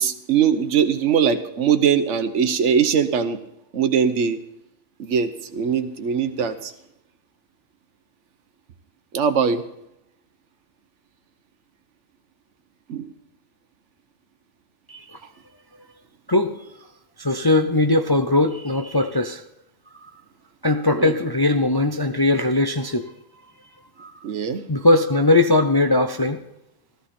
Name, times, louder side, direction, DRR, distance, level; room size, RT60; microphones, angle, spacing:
voice 1, 0.0-3.4 3.7-4.4 5.0-6.7 9.1-9.6 12.9-13.1 20.9-21.1 24.2-24.6, right 7 dB, 70° right, 10 dB, 1.2 m, -21 dB
voice 2, 17.2-19.4 20.6-23.1 24.0-24.1 24.7-26.4, left 2 dB, 30° left, 6 dB, 0.5 m, -20 dB
14.0 x 14.0 x 4.3 m, 0.84 s
omnidirectional pair, 1.3 m